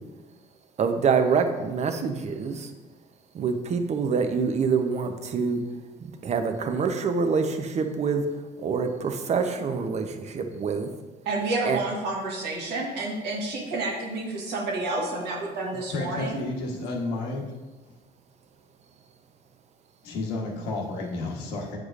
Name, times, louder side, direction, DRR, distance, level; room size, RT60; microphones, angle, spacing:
voice 1, 0.8-2.7 3.3-5.6 6.2-8.2 8.6-10.9 11.7-11.8, right 5 dB, 40° right, 6 dB, 0.7 m, -26 dB
voice 2, 11.2-16.4, right 2 dB, 90° right, -2 dB, 1.5 m, -30 dB
voice 3, 15.7-17.5 20.0-21.8, left 2 dB, 85° left, 0 dB, 1.2 m, -31 dB
8.1 x 4.8 x 2.5 m, 1.2 s
cardioid pair, 110°, 17 cm